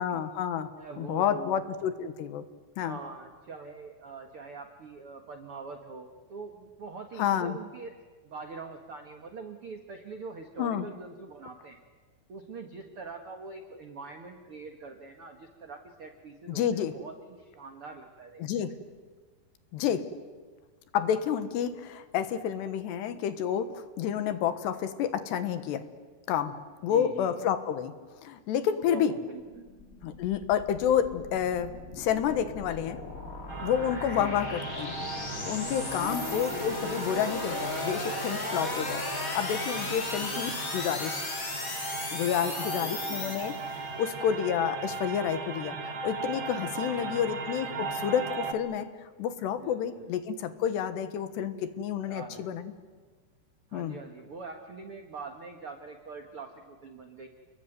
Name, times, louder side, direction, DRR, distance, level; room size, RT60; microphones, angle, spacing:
voice 1, 0.0-0.7 1.0-2.4 2.8-3.0 7.2-7.6 10.6-10.9 16.5-16.9 18.4-18.7 19.7-20.0 20.9-25.9 26.3-26.6 26.8-27.9 28.2-29.1 30.0-33.0 33.6-34.9 35.4-39.0 39.3-41.2 42.1-48.9 49.2-52.7 53.7-54.0, left 9 dB, 75° left, 11 dB, 3.3 m, -29 dB
voice 2, 0.7-1.6 2.8-7.9 8.2-11.8 12.3-18.4 26.9-27.4 28.9-29.7 34.1-34.5 36.0-36.5 40.1-40.7 42.3-43.6 46.7-47.2 47.5-47.8 49.6-50.1 52.0-52.5 53.7-57.3, right 4 dB, 70° right, 5 dB, 1.3 m, -44 dB
sound 1, 29.4-44.0, left 3 dB, 30° left, 1.8 m, -37 dB
sound 2, 33.5-48.5, right 4 dB, 50° right, 1.5 m, -37 dB
29.5 x 21.5 x 9.3 m, 1.4 s
omnidirectional pair, 5.2 m